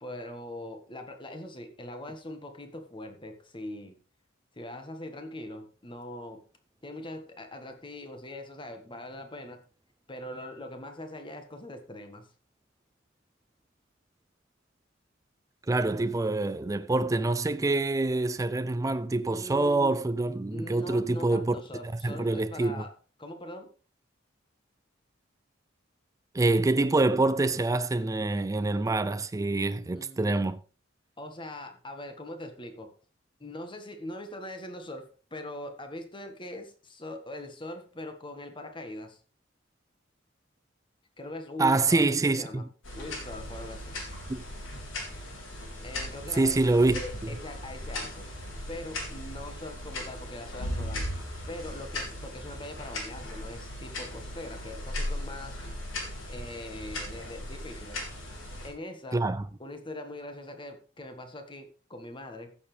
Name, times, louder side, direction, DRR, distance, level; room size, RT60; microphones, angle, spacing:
voice 1, 0.0-4.0 4.6-6.4 6.8-9.6 10.1-12.3 19.3-20.1 20.5-23.7 29.9-30.5 31.2-32.9 33.4-39.2 41.2-42.7 43.0-44.0 45.8-48.3 48.7-51.1 51.5-55.6 56.3-58.0 58.6-59.2 59.6-62.6, left 1 dB, 25° left, 1.7 m, -42 dB
voice 2, 15.7-21.5 22.0-22.8 26.3-30.6 41.6-42.6 44.3-44.4 46.3-47.3 59.1-59.5, right 2 dB, 15° right, 0.4 m, -26 dB
sound 1, 42.8-58.7, left 1 dB, 90° left, 4.5 m, -38 dB
15.5 x 7.1 x 3.4 m
head